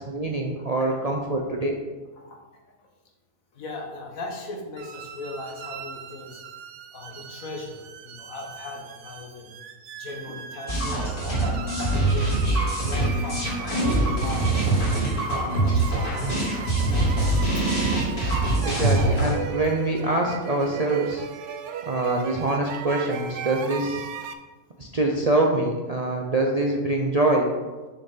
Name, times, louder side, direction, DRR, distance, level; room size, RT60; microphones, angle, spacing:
voice 1, 0.0-1.8 18.6-21.2 21.9-24.1 24.8-27.5, right 2 dB, 45° right, 0 dB, 0.5 m, -24 dB
voice 2, 0.6-1.0 2.2-2.4 3.5-6.4 6.9-9.5 9.9-11.0 11.4-11.6 11.9-12.4 12.8-14.7 15.2-16.1 17.5-17.7, left 2 dB, 70° left, 1 dB, 1.6 m, -38 dB
sound 1, 4.8-24.3, right 8 dB, 65° right, 0.8 m, -37 dB
sound 2, 10.7-19.3, right 2 dB, 85° left, 3.2 m, -23 dB
6.7 x 6.6 x 3.8 m, 1.3 s
omnidirectional pair, 1.5 m